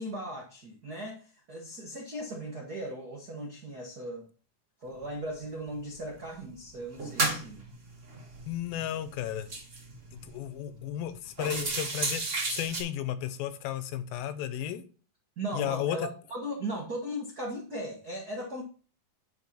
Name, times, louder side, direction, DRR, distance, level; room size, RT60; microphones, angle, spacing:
voice 1, 0.0-4.3 4.8-7.6 11.4-11.8 15.4-18.6, right 1 dB, 70° right, 0 dB, 0.9 m, -38 dB
sound 1, 5.0-5.1 5.5-6.3 6.7-10.4 10.8-10.9 11.3-12.8, right 3 dB, 35° right, 1.3 m, -34 dB
voice 2, 8.5-9.5 10.1-14.8 15.5-16.1, left 11 dB, 90° left, 12 dB, 2.6 m, -34 dB
10.0 x 4.3 x 4.2 m, 0.37 s
omnidirectional pair, 4.1 m